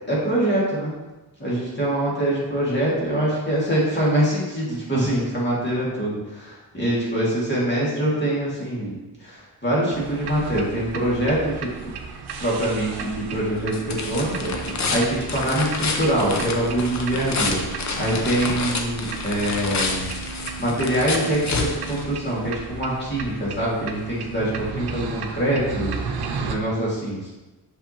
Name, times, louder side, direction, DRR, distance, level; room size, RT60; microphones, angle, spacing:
voice 1, 0.1-0.9 1.4-9.0 9.2-11.9 12.4-17.6 18.0-20.1 20.6-27.3, right 1 dB, 30° left, -6 dB, 2.1 m, -24 dB
sound 1, 9.9-26.5, right 5 dB, 80° right, 0.7 m, -35 dB
sound 2, 13.0-22.5, left 3 dB, 45° left, 0.7 m, -29 dB
6.1 x 5.7 x 2.9 m, 1.1 s
wide cardioid pair, 140°, 39 cm